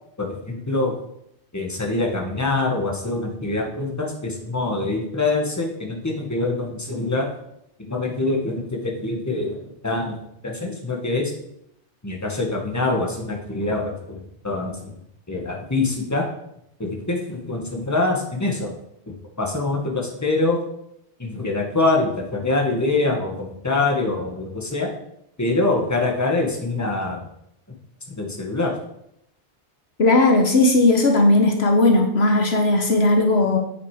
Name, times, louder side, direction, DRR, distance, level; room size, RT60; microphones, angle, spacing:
voice 1, 0.2-0.9 1.5-7.3 7.9-9.6 9.8-10.1 10.4-11.3 12.0-13.9 14.4-14.7 15.3-16.2 16.8-18.7 19.4-20.6 21.2-24.9 25.4-27.2 28.2-28.7, left 2 dB, 15° left, 0 dB, 1.6 m, -24 dB
voice 2, 30.0-33.6, left 2 dB, 65° left, 3 dB, 1.4 m, -17 dB
8.6 x 6.8 x 4.9 m, 0.76 s
omnidirectional pair, 1.2 m